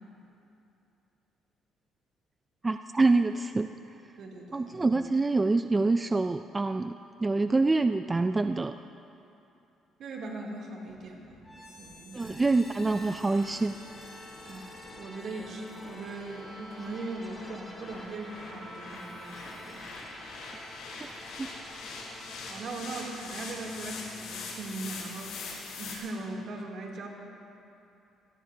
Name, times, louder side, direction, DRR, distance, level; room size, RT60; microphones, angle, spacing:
voice 1, 2.6-3.7 4.5-8.8 12.1-13.8 21.0-21.1 21.4-21.5, right 3 dB, 15° right, 8 dB, 0.3 m, -26 dB
voice 2, 4.2-4.7 10.0-12.3 14.5-20.1 22.5-25.3 25.8-27.1, right 2 dB, 60° right, -1 dB, 2.9 m, -40 dB
sound 1, 10.9-26.0, left 4 dB, 80° left, 4.9 m, -44 dB
sound 2, 11.4-25.3, equal, 10° left, 4.5 m, -48 dB
27.0 x 18.0 x 2.8 m, 2.8 s
cardioid pair, 135°, 0 cm